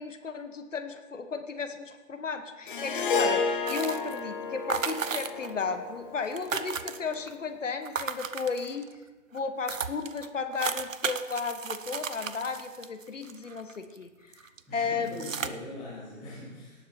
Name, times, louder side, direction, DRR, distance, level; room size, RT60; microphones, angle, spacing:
voice 1, 0.0-8.9 9.3-14.3 14.7-15.3, left 5 dB, 65° left, 7 dB, 1.3 m, -34 dB
Harp, 2.7-7.1, left 4 dB, 40° left, 0.9 m, -32 dB
sound 1, 3.7-4.3 4.7-5.6 5.9-6.0 6.2-7.3 7.8-8.9 9.4-9.5 9.7-14.0 14.3-14.6 15.1-15.5, right 6 dB, 70° right, 0.7 m, -35 dB
voice 2, 14.7-16.8, left 2 dB, ahead, -21 dB, 0.5 m, -41 dB
18.0 x 7.3 x 4.5 m, 1.2 s
figure-of-eight pair, 135°, 41 cm